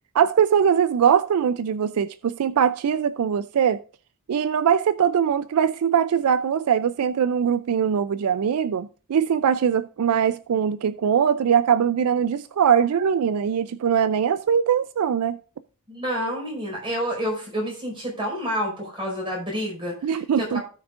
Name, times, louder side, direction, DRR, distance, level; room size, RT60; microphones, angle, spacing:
voice 1, 0.1-3.8 4.3-15.4 20.0-20.6, right 8 dB, 70° right, 0.4 m, -21 dB
voice 2, 15.9-20.6, equal, 25° right, 4.9 m, -29 dB
17.0 x 6.2 x 2.5 m
head